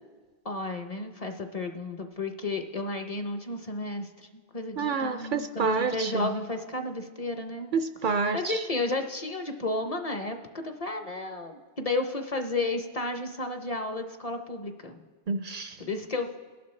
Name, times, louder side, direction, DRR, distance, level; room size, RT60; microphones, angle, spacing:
voice 1, 0.4-7.7 8.3-15.0 15.8-16.3, left 2 dB, 40° left, 6 dB, 0.8 m, -32 dB
voice 2, 4.8-6.3 7.7-8.6 15.3-15.8, right 4 dB, 60° right, 9 dB, 0.6 m, -28 dB
21.0 x 11.0 x 3.2 m, 1.4 s
omnidirectional pair, 1.1 m